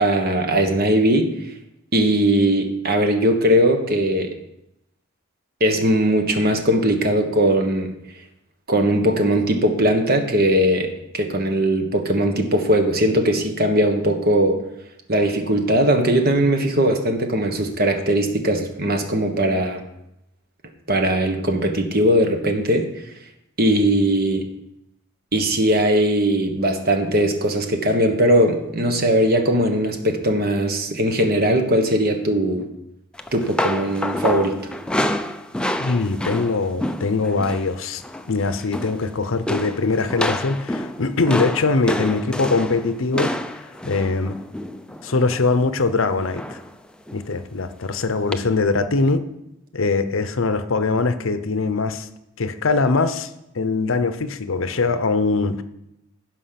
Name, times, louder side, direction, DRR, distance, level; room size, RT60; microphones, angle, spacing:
voice 1, 0.0-1.4 1.9-4.3 5.6-7.9 8.7-14.6 15.1-19.8 20.9-22.9 23.6-24.5 25.3-32.7 33.3-34.6, right 1 dB, 50° right, 5 dB, 1.4 m, -19 dB
sound 1, 33.2-37.7 38.0-38.3 38.6-39.1 39.5-45.5 46.3-46.7 47.1-47.2 48.3-48.4, left 1 dB, 5° left, 0.5 m, -28 dB
voice 2, 35.8-38.0 38.3-43.3 43.8-44.4 45.0-46.6 47.1-49.2 49.7-52.1 52.4-53.3 53.5-55.6, left 3 dB, 75° left, 11 dB, 0.8 m, -22 dB
15.5 x 5.3 x 5.9 m, 0.84 s
head